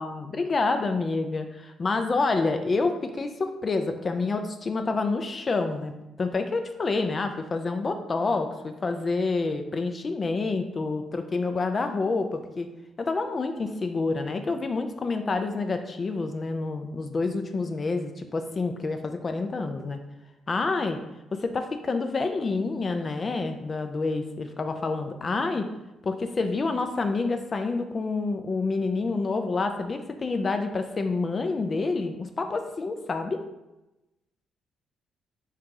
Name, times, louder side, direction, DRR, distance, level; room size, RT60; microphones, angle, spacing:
voice 1, 0.0-5.9 6.2-12.7 13.0-20.0 20.5-21.0 21.3-25.7 26.0-33.4, left 3 dB, 35° left, 6 dB, 0.3 m, -28 dB
3.6 x 2.8 x 3.7 m, 0.97 s
cardioid pair, 90°, 0 cm